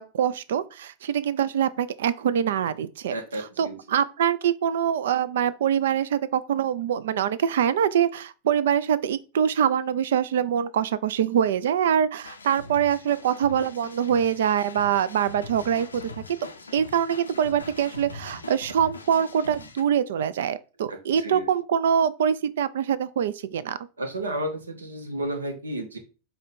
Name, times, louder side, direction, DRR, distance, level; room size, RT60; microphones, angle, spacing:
voice 1, 0.0-3.1 3.6-16.4 16.7-23.8, right 8 dB, 60° right, 0.3 m, -24 dB
voice 2, 3.1-3.8 20.9-21.5 24.0-26.0, right 1 dB, 75° right, 0.8 m, -32 dB
sound 1, 12.2-19.8, left 3 dB, 75° left, 0.5 m, -42 dB
5.0 x 2.2 x 4.1 m
figure-of-eight pair, 90°, 0 cm